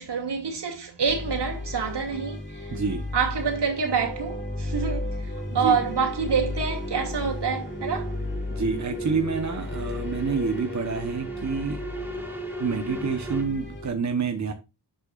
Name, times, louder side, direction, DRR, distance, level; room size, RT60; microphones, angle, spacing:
voice 1, 0.0-2.8 3.1-8.2, right 6 dB, 70° right, 2.7 m, -27 dB
sound 1, 1.0-13.9, left 2 dB, 25° left, 5.0 m, -34 dB
voice 2, 2.7-3.1 5.5-5.8 8.5-11.8 12.6-14.5, right 5 dB, 40° right, 1.1 m, -28 dB
sound 2, 3.0-13.4, right 2 dB, 5° right, 2.4 m, -39 dB
10.5 x 8.0 x 2.5 m
wide cardioid pair, 120°, 42 cm